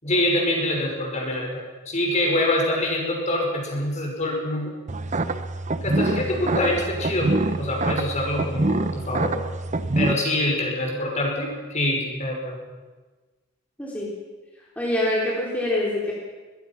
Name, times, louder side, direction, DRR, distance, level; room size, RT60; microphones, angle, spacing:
voice 1, 0.0-4.7 5.8-9.3 10.0-12.6, left 1 dB, 35° left, 0 dB, 5.9 m, -25 dB
sound 1, 4.9-10.1, right 2 dB, 35° right, 0.9 m, -25 dB
voice 2, 13.8-14.1 14.8-16.1, left 1 dB, 5° left, -5 dB, 4.0 m, -25 dB
23.5 x 21.0 x 6.1 m, 1.3 s
head